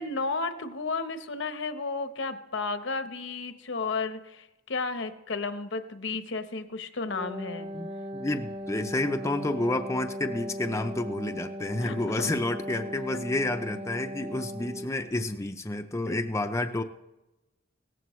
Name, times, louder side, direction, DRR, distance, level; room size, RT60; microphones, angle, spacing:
voice 1, 0.0-7.7 11.8-12.3 13.1-13.2 16.1-16.2, left 3 dB, 70° left, 9 dB, 0.9 m, -33 dB
Wind instrument woodwind instrument, 7.0-15.0, equal, 30° right, 1.2 m, -38 dB
voice 2, 7.7-16.8, left 2 dB, 15° left, 5 dB, 0.6 m, -30 dB
17.0 x 14.5 x 3.1 m, 0.95 s
head